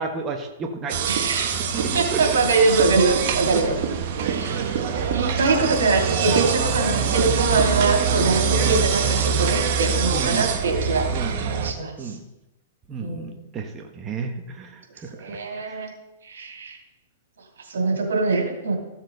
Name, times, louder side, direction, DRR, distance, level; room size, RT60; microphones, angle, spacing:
voice 1, 0.0-1.0 1.5-2.7 3.5-3.7 4.5-4.7 8.5-8.9 10.1-10.5 11.1-11.5 12.0-12.2 12.9-15.8, right 5 dB, 20° right, 3 dB, 1.2 m, -33 dB
sound 1, 0.9-11.7, right 6 dB, 55° right, 1.2 m, -24 dB
voice 2, 1.1-1.6 1.9-3.7 4.2-11.1 11.3-12.1 13.0-13.2 15.2-15.9 16.3-16.8 17.7-18.7, right 3 dB, 90° right, 1 dB, 2.8 m, -23 dB
14.5 x 7.4 x 4.0 m, 0.96 s
hypercardioid pair, 140°, 0 cm